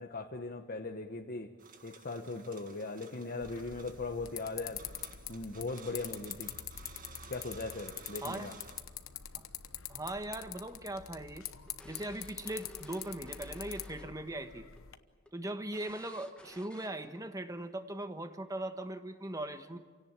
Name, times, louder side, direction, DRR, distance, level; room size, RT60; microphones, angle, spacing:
voice 1, 0.0-1.5 1.8-4.8 5.3-6.6 7.3-8.6, left 3 dB, 45° left, 3 dB, 1.1 m, -39 dB
sound 1, 1.6-8.8, right 5 dB, 40° right, 1.8 m, -55 dB
sound 2, 3.4-15.0, left 10 dB, 75° left, 1.1 m, -45 dB
voice 2, 9.9-11.5 11.8-14.7 15.3-19.8, right 1 dB, 15° right, 8 dB, 1.3 m, -39 dB
sound 3, 10.7-14.3 14.6-14.8 15.3-15.4 15.7-17.2, left 1 dB, 5° left, 1.6 m, -55 dB
28.5 x 17.5 x 9.0 m, 1.5 s
head